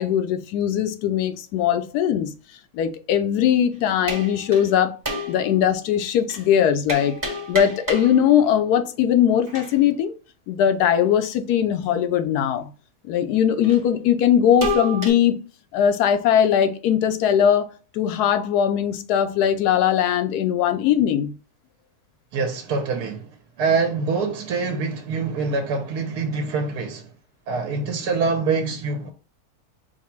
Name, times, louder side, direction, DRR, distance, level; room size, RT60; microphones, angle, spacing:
voice 1, 0.0-2.3 2.7-5.0 5.3-7.2 7.5-10.1 10.5-12.7 13.0-15.4 15.7-21.3, left 9 dB, 85° left, 1.1 m, -20 dB
sound 1, 4.1-4.7 5.0-5.7 6.3-6.5 6.9-8.5 9.4-9.8 13.6-13.8 14.6-15.1, equal, 15° right, 0.7 m, -30 dB
voice 2, 22.3-23.3 23.6-27.1 27.5-29.1, right 4 dB, 85° right, 1.2 m, -25 dB
4.7 x 2.0 x 4.4 m
omnidirectional pair, 1.6 m